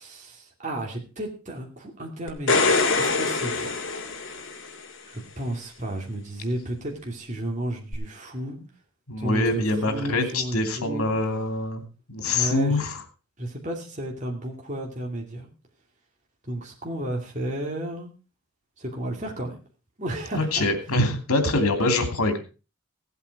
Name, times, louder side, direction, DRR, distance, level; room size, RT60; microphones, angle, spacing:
voice 1, 0.0-3.7 5.1-8.6 9.2-11.1 12.3-12.8 13.4-15.5 16.4-18.1 18.8-19.6 20.0-20.7, right 1 dB, 35° right, 0 dB, 2.6 m, -33 dB
sound 1, 2.3-4.8 7.9-8.0, left 3 dB, 60° left, 2.4 m, -24 dB
voice 2, 9.1-13.0 20.3-22.4, left 2 dB, 90° left, 7 dB, 2.8 m, -24 dB
16.0 x 8.3 x 4.7 m, 0.34 s
head